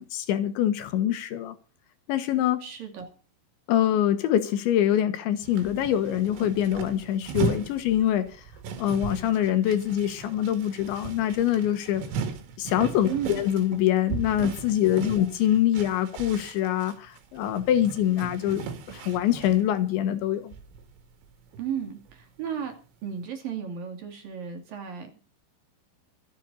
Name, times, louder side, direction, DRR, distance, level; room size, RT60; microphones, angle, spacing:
voice 1, 0.0-1.6 2.1-2.6 3.7-8.3 8.8-12.0 12.6-20.5, left 11 dB, 75° left, 3.4 m, -24 dB
voice 2, 2.6-3.1 13.1-13.5 15.0-15.3 21.6-22.8 23.0-25.2, right 8 dB, 50° right, 3.7 m, -34 dB
sound 1, 5.4-19.7 20.2-20.3 20.5-21.8 22.1-22.2, right 6 dB, 85° right, 4.8 m, -37 dB
24.0 x 8.1 x 4.1 m
omnidirectional pair, 5.6 m